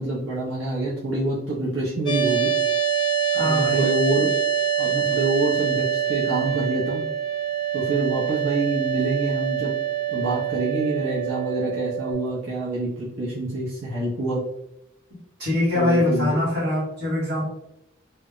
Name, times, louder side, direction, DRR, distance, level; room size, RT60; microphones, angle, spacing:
voice 1, 0.0-2.5 3.3-4.3 4.8-7.0 7.7-9.7 10.1-14.4 15.7-16.4, right 2 dB, 75° right, -7 dB, 0.7 m, -26 dB
sound 1, 2.1-12.1, right 9 dB, 20° left, 0.4 m, -25 dB
voice 2, 3.3-3.8 15.4-17.4, left 1 dB, 50° right, -5 dB, 1.2 m, -23 dB
2.2 x 2.0 x 3.6 m, 0.83 s
head